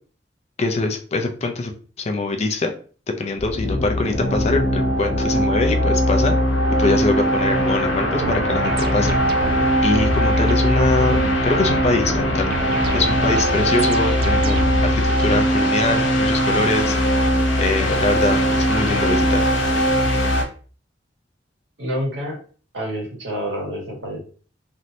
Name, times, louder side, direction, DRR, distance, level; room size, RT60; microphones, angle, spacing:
voice 1, 0.6-1.7 2.0-2.7 3.1-6.4 6.8-9.2 9.8-12.5 12.9-14.9 15.2-17.0 17.6-19.5, left 3 dB, 35° left, 5 dB, 0.4 m, -23 dB
sound 1, 3.4-20.4, equal, 80° left, 0.9 m, -20 dB
sound 2, 8.2-15.1, right 5 dB, 55° right, 0.3 m, -31 dB
voice 2, 21.8-22.4 22.7-24.2, equal, 75° right, -4 dB, 1.6 m, -28 dB
3.2 x 2.6 x 2.7 m, 0.40 s
head